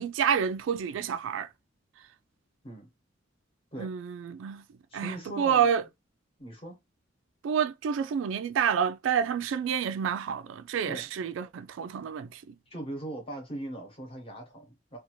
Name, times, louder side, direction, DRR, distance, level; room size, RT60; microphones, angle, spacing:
voice 1, 0.0-1.5 3.8-4.6 4.9-5.8 7.4-12.4, right 7 dB, 85° right, 0.3 m, -28 dB
voice 2, 4.9-5.7 6.4-6.8 10.9-11.1 12.7-15.0, right 1 dB, 30° left, 0.9 m, -39 dB
2.6 x 2.4 x 2.9 m
head